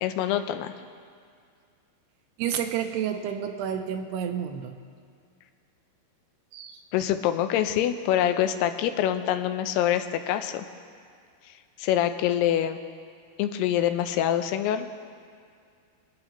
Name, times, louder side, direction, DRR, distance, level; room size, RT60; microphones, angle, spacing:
voice 1, 0.0-0.7 6.9-10.7 11.8-12.8 13.4-14.9, left 11 dB, 90° left, 8 dB, 2.7 m, -25 dB
voice 2, 2.4-4.8 6.5-6.8, right 9 dB, 90° right, 6 dB, 2.8 m, -30 dB
26.0 x 8.7 x 3.0 m, 2.2 s
omnidirectional pair, 4.6 m